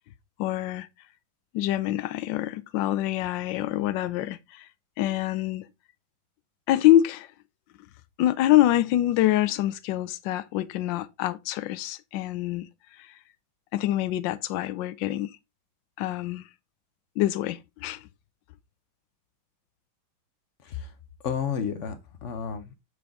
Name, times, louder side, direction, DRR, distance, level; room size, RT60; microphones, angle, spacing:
voice 1, 0.4-0.9 1.5-4.7 5.0-5.7 6.7-7.3 8.2-12.7 13.7-15.3 16.0-16.4 17.2-18.0, left 14 dB, 75° left, 1.3 m, -25 dB
voice 2, 21.2-22.7, left 7 dB, 55° left, 0.8 m, -31 dB
7.4 x 4.7 x 3.6 m
omnidirectional pair, 2.2 m